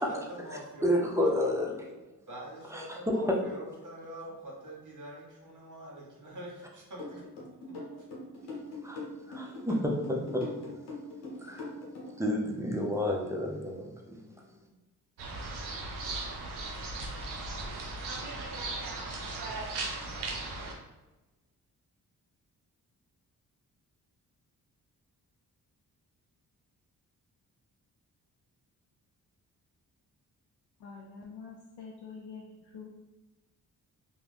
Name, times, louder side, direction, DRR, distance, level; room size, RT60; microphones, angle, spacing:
voice 1, 0.1-1.3 2.3-7.2 7.7-8.1, right 1 dB, 50° right, -2 dB, 1.2 m, -45 dB
voice 2, 0.8-1.9 2.7-3.4 8.8-10.8 11.1-14.6, left 1 dB, 5° right, -1 dB, 0.6 m, -31 dB
sound 1, 7.0-12.3, left 3 dB, 90° left, 0.9 m, -41 dB
sound 2, 15.2-20.7, right 2 dB, 80° right, 0.6 m, -37 dB
voice 3, 30.8-32.9, left 5 dB, 70° left, -2 dB, 0.6 m, -46 dB
2.4 x 2.2 x 3.4 m, 1.1 s
supercardioid pair, 50°, 40 cm